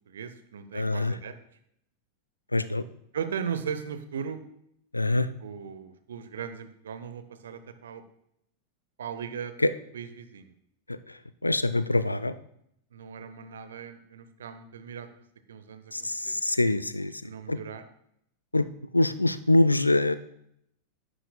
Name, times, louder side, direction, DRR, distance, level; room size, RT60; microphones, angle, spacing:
voice 1, 0.1-1.3 3.1-4.4 5.4-8.0 9.0-9.5 9.9-10.5 12.9-15.1 15.5-16.4 17.2-17.8, right 7 dB, 65° right, 10 dB, 0.7 m, -37 dB
voice 2, 0.7-1.1 2.5-2.8 4.9-5.3 9.6-9.7 10.9-11.0 11.4-12.4 15.9-17.1 17.5-17.6 18.5-18.7 18.9-20.1, left 2 dB, 85° left, 14 dB, 0.4 m, -24 dB
10.0 x 10.0 x 2.2 m, 0.73 s
figure-of-eight pair, 90°, 0 cm